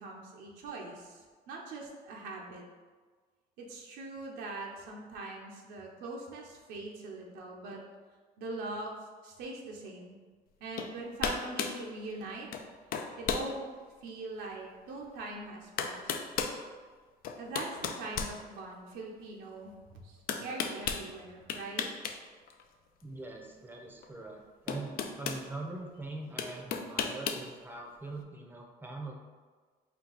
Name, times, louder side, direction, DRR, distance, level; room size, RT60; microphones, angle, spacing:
voice 1, 0.0-2.6 3.6-7.8 8.4-9.0 9.2-10.2 10.6-12.5 13.2-13.5 14.0-16.2 17.4-19.7 20.0-21.9, right 2 dB, 85° right, -1 dB, 0.7 m, -42 dB
sound 1, 10.8-10.9 11.2-11.8 12.5-12.7 12.9-13.5 14.1-14.2 15.3-15.4 15.8-16.6 17.2-18.9 20.3-21.0 21.5-22.2 22.5-22.6 24.0-24.1 24.7-25.4 26.4-27.5, left 6 dB, 60° left, 0.4 m, -34 dB
voice 2, 23.0-29.1, right 2 dB, 10° right, 1 dB, 0.6 m, -42 dB
4.4 x 2.3 x 3.9 m, 1.5 s
cardioid pair, 110°, 17 cm